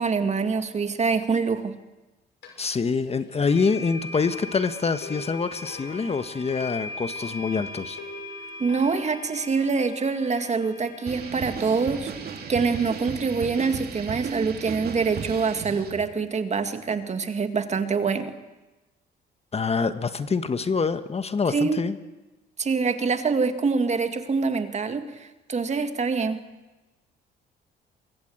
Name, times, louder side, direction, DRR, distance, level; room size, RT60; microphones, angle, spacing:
voice 1, 0.0-1.7 8.6-12.1 12.5-18.3 21.5-21.8 22.6-26.4, right 4 dB, 35° right, 8 dB, 2.2 m, -25 dB
sound 1, 2.4-2.5 3.5-13.5, left 2 dB, 70° left, 6.3 m, -40 dB
voice 2, 2.6-8.0 19.5-22.0, left 5 dB, 35° left, 11 dB, 1.4 m, -26 dB
sound 2, 11.1-16.1, right 6 dB, 55° right, 2.7 m, -35 dB
24.5 x 22.5 x 8.1 m, 1.1 s
cardioid pair, 90°, 19 cm